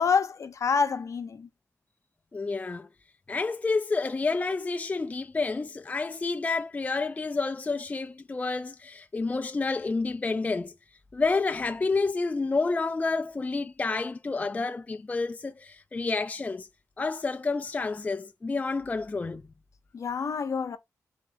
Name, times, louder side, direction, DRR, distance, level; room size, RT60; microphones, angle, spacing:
voice 1, 0.0-1.5 19.9-20.8, left 5 dB, 60° left, 0.6 m, -27 dB
voice 2, 2.3-2.9 3.3-10.7 11.1-16.7 17.0-19.4, left 3 dB, 25° left, 0.3 m, -29 dB
3.5 x 3.2 x 2.8 m
cardioid pair, 75°, 6 cm